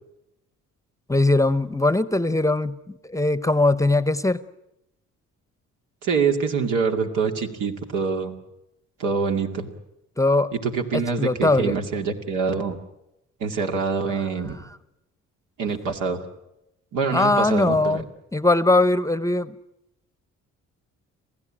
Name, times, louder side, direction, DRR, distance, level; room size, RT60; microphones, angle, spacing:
voice 1, 1.1-4.4 10.2-10.5 10.9-11.8 14.1-14.2 17.1-18.0 18.3-19.5, left 2 dB, 10° left, 0.8 m, -21 dB
voice 2, 6.0-8.3 9.0-9.7 10.5-12.8 13.4-14.6 15.6-16.2 16.9-18.0, right 5 dB, 90° right, 2.3 m, -25 dB
27.0 x 16.0 x 8.8 m
cardioid pair, 90°, 30 cm